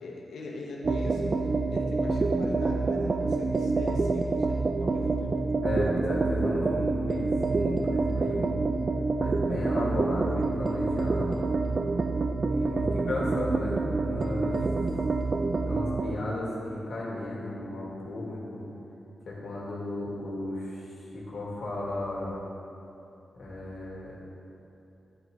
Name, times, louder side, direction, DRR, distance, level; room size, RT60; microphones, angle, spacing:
voice 1, 0.0-5.4 14.5-14.9, left 2 dB, 90° left, -2 dB, 1.2 m, -41 dB
sound 1, 0.8-16.2, right 3 dB, 50° right, 0.5 m, -27 dB
voice 2, 5.6-8.6 9.2-11.4 12.5-14.6 15.7-18.6 19.3-22.4 23.3-24.1, left 1 dB, 70° left, -5 dB, 2.2 m, -34 dB
9.7 x 9.3 x 3.2 m, 2.8 s
cardioid pair, 60°, 0 cm